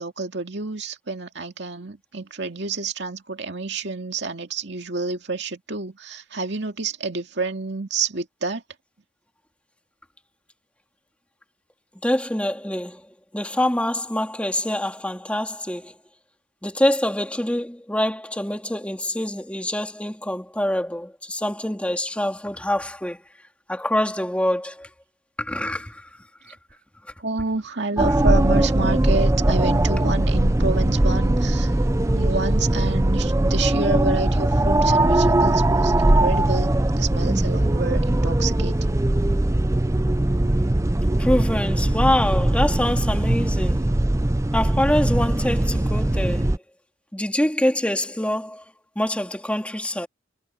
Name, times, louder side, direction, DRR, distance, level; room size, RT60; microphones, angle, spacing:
voice 1, 0.0-8.6 27.2-31.7 32.1-39.0, right 4 dB, 60° right, 2.3 m, -29 dB
voice 2, 12.0-13.1 13.3-15.9 16.6-23.2 23.7-24.9 25.4-26.2 26.5-26.6 41.2-43.9 44.5-46.6 47.1-48.6 49.0-50.1, left 1 dB, 5° left, 2.6 m, -25 dB
sound 1, 28.0-46.6, right 1 dB, 15° right, 0.5 m, -20 dB
head